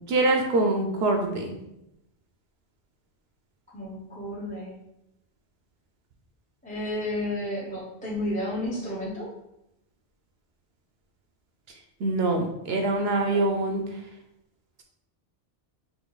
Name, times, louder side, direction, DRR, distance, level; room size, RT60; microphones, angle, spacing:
voice 1, 0.1-1.6 12.0-13.8, right 2 dB, 65° right, 3 dB, 0.8 m, -24 dB
voice 2, 3.7-4.7 6.6-9.3 13.1-13.4, left 1 dB, 10° left, -6 dB, 0.7 m, -32 dB
4.0 x 2.6 x 3.9 m, 0.85 s
omnidirectional pair, 1.2 m